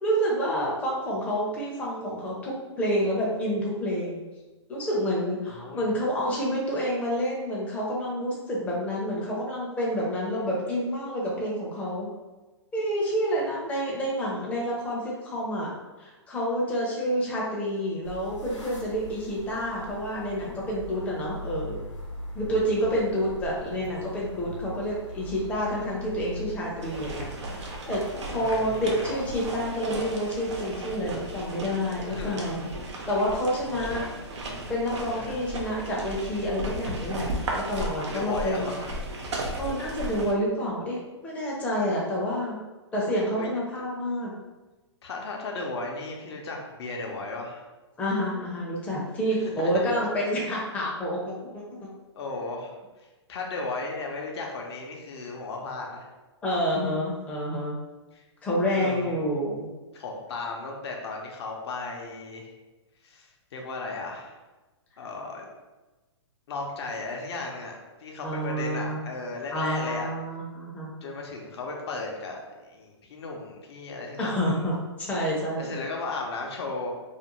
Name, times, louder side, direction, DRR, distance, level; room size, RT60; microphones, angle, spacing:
voice 1, 0.0-4.2 4.7-12.1 12.7-15.7 16.0-21.8 22.3-27.3 27.5-28.0 28.3-32.6 33.1-34.0 34.7-38.8 39.6-42.6 42.9-44.3 48.0-51.9 56.4-57.8 58.4-59.7 68.2-69.0 69.5-70.9 74.2-75.8, equal, 10° left, -5 dB, 0.5 m, -28 dB
voice 2, 5.5-5.8 28.3-29.2 32.0-32.7 34.0-34.1 35.2-35.4 38.1-38.9 43.4-43.5 45.0-47.7 49.4-50.0 52.1-52.7 53.0-56.1 58.1-58.2 58.7-59.2 59.9-62.5 63.0-64.4 65.0-65.5 66.5-70.1 71.0-74.6 75.6-76.9, left 3 dB, 65° left, 0 dB, 0.6 m, -35 dB
sound 1, 18.0-29.7, equal, 85° left, 0.8 m, -41 dB
sound 2, 26.8-40.3, right 1 dB, 75° right, 0.6 m, -35 dB
2.5 x 2.1 x 2.9 m, 1.2 s
hypercardioid pair, 130°, 15 cm